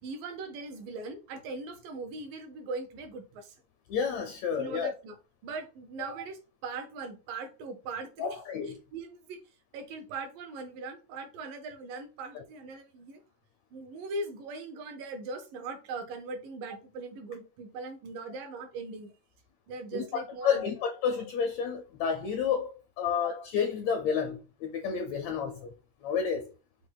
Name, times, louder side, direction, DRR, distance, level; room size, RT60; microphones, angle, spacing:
voice 1, 0.0-3.6 4.6-5.2 5.4-8.4 8.9-9.4 9.7-13.2 13.7-19.1 19.7-20.7, right 3 dB, 85° right, 2.7 m, -40 dB
voice 2, 3.9-4.9 8.2-8.8 12.3-12.4 19.9-25.7 26.0-26.5, left 6 dB, 75° left, 1.6 m, -30 dB
5.9 x 2.2 x 3.9 m
omnidirectional pair, 3.8 m